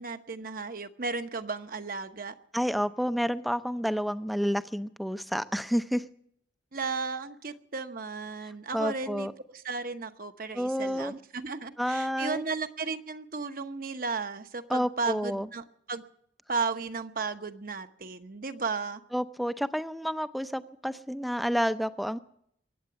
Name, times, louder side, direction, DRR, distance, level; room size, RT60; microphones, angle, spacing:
voice 1, 0.0-2.3 6.7-9.3 9.5-16.0 16.5-19.0, right 4 dB, 50° right, 9 dB, 1.0 m, -34 dB
voice 2, 2.5-6.0 8.7-9.3 10.5-11.1 11.8-12.4 14.7-15.5 19.1-22.2, equal, ahead, 11 dB, 0.5 m, -29 dB
23.0 x 8.9 x 6.9 m, 0.70 s
head